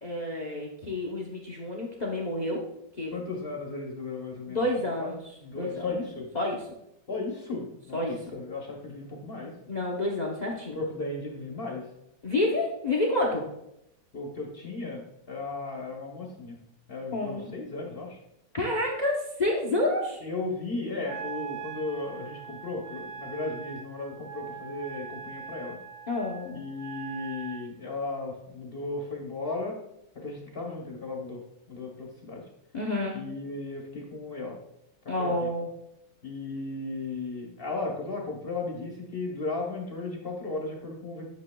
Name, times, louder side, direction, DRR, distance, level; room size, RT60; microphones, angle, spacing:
voice 1, 0.0-2.7 3.0-3.1 4.5-5.9 6.3-6.7 7.9-8.3 9.7-10.8 12.2-13.5 17.1-17.5 18.5-20.2 26.1-26.6 32.7-33.2 35.1-35.7, left 1 dB, 75° left, -1 dB, 0.4 m, -29 dB
voice 2, 3.1-4.6 5.0-5.1 5.4-6.3 7.1-9.5 10.7-11.8 14.1-16.6 16.9-18.2 20.2-25.8 26.5-29.8 30.1-31.4 31.7-32.4 33.1-34.6 35.2-35.5 36.2-41.3, left 3 dB, 45° left, 0 dB, 0.8 m, -35 dB
Wind instrument woodwind instrument, 21.1-27.7, right 7 dB, 90° right, 1.3 m, -42 dB
9.2 x 6.5 x 2.2 m, 0.82 s
omnidirectional pair, 2.0 m